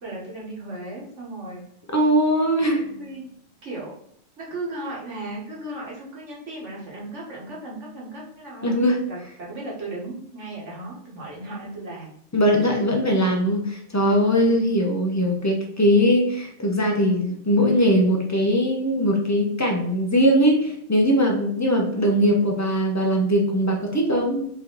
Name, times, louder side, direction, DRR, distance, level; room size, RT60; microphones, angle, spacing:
voice 1, 0.0-1.6 3.0-3.3 3.6-4.0 4.4-12.1 14.0-14.7, right 2 dB, 80° right, -4 dB, 1.7 m, -36 dB
voice 2, 1.9-2.9 8.6-9.0 12.3-24.4, equal, 20° left, 1 dB, 0.7 m, -20 dB
4.2 x 3.1 x 3.9 m, 0.68 s
omnidirectional pair, 1.2 m